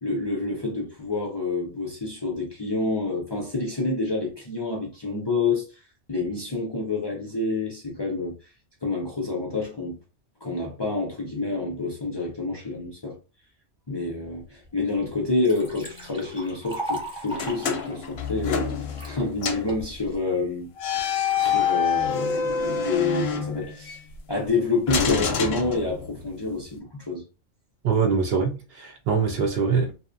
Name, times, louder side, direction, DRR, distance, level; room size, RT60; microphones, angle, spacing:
voice 1, 0.0-5.6 6.1-8.4 8.8-10.0 10.4-13.2 13.9-18.7 19.0-21.0 21.3-24.0 24.3-27.2, left 3 dB, 45° left, 0.3 m, -28 dB
Liquid, 14.6-14.7 15.1-19.1 19.7-20.2, right 1 dB, 5° right, 0.8 m, -37 dB
sound 1, 17.3-19.2 19.4-19.7 20.8-24.0 24.9-26.3, left 6 dB, 65° left, 0.7 m, -26 dB
voice 2, 27.8-29.9, right 5 dB, 65° right, 0.7 m, -23 dB
2.7 x 2.1 x 2.5 m
omnidirectional pair, 1.3 m